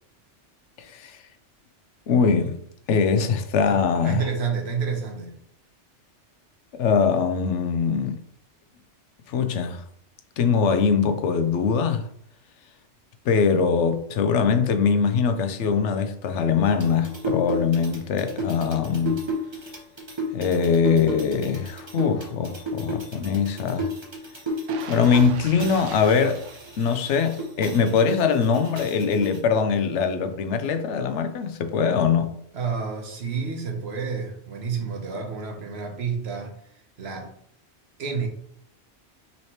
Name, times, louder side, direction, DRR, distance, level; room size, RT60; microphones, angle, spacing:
voice 1, 0.8-1.2 2.1-2.6 2.9-4.3 6.7-8.2 9.3-9.8 10.4-12.1 13.3-19.2 20.3-23.9 24.9-26.4 26.8-32.3, left 6 dB, 75° left, 0.9 m, -22 dB
voice 2, 3.6-5.4 32.5-37.3 38.0-38.3, right 5 dB, 60° right, 1.2 m, -30 dB
sound 1, 16.6-25.3 25.6-29.4, equal, 25° right, 0.9 m, -33 dB
sound 2, 24.7-27.6 28.0-28.2, right 5 dB, 90° right, 1.0 m, -41 dB
5.5 x 3.2 x 2.9 m
omnidirectional pair, 1.2 m